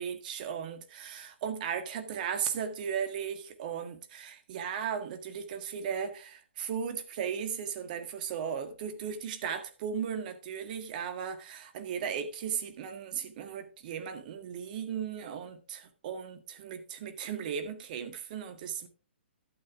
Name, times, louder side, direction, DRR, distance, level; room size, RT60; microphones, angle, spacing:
voice 1, 0.0-18.9, right 7 dB, 45° right, 1.9 m, -36 dB
12.0 x 8.6 x 3.6 m
hypercardioid pair, 130°, 6 cm